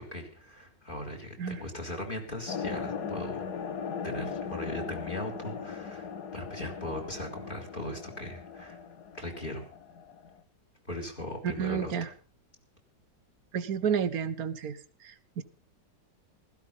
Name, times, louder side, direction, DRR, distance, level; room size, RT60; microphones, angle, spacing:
voice 1, 0.0-3.5 4.0-8.8 9.1-9.7 10.9-12.1, left 1 dB, 25° left, 4 dB, 3.6 m, -39 dB
sound 1, 2.5-10.4, left 6 dB, 65° left, 1.8 m, -39 dB
voice 2, 11.6-12.1 13.5-14.8 15.0-15.4, right 7 dB, 60° right, 14 dB, 1.5 m, -31 dB
16.0 x 14.0 x 5.4 m, 0.38 s
omnidirectional pair, 1.9 m